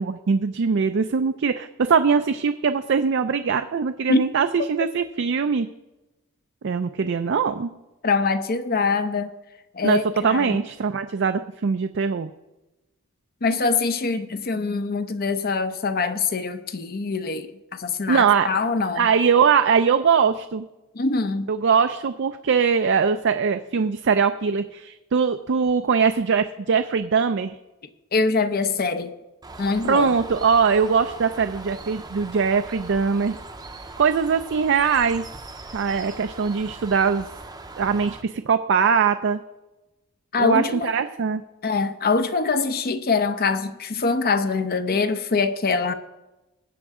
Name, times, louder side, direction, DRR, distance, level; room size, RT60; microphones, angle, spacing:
voice 1, 0.0-5.7 6.6-7.7 9.8-12.3 18.1-18.5 18.9-20.6 21.5-27.6 29.9-33.4 34.0-35.3 35.7-37.3 37.8-39.4 40.4-41.4, right 6 dB, 55° right, 0.4 m, -21 dB
voice 2, 8.0-9.3 9.7-10.6 13.4-19.1 20.9-21.5 28.1-29.1 29.6-30.1 40.3-40.9 41.6-45.9, left 4 dB, 45° left, 0.7 m, -24 dB
Bird, 29.4-38.2, right 3 dB, 15° right, 0.7 m, -40 dB
19.5 x 7.9 x 3.6 m
head